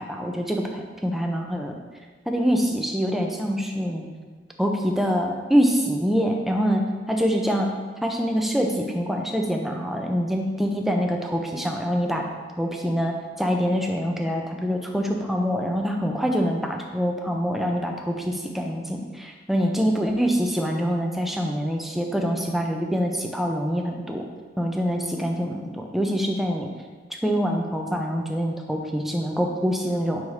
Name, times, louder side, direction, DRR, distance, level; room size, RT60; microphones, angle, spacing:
voice 1, 0.0-1.8 2.3-4.0 4.6-7.7 8.0-12.2 12.6-24.3 24.6-26.7 27.2-30.2, equal, ahead, 1 dB, 0.5 m, -25 dB
4.8 x 4.1 x 4.9 m, 1.4 s
head